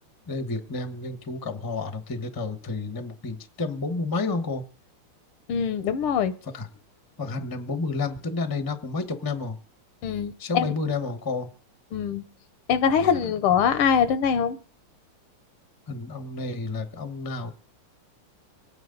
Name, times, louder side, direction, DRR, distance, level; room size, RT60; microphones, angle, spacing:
voice 1, 0.3-4.6 6.5-6.7 7.2-9.6 10.4-11.5 13.0-13.1 15.9-17.5, left 3 dB, 20° left, 8 dB, 0.6 m, -30 dB
voice 2, 5.5-6.3 10.0-10.7 11.9-12.2 12.7-14.6, left 7 dB, 80° left, 12 dB, 1.7 m, -23 dB
25.0 x 9.2 x 3.9 m, 0.40 s
omnidirectional pair, 2.4 m